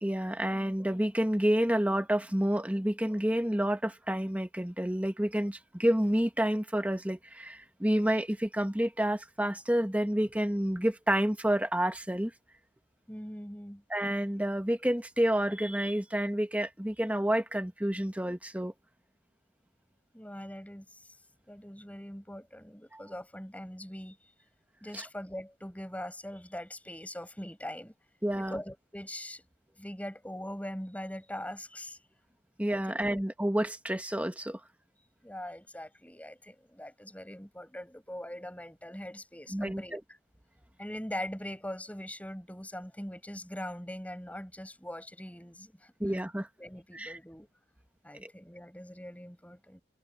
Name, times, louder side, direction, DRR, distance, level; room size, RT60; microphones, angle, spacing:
voice 1, 0.0-12.3 13.9-18.7 22.9-23.0 24.9-25.0 28.2-28.6 32.6-34.6 39.5-40.0 46.0-46.5 46.9-47.2 48.2-48.3, right 1 dB, 10° right, 1.3 m, -29 dB
voice 2, 13.1-13.8 20.1-21.1 21.5-24.2 24.8-27.9 28.4-29.4 29.8-32.0 32.7-33.2 35.2-40.2 40.8-45.9 46.6-47.5 48.0-49.8, left 1 dB, 10° left, 7.0 m, -42 dB
head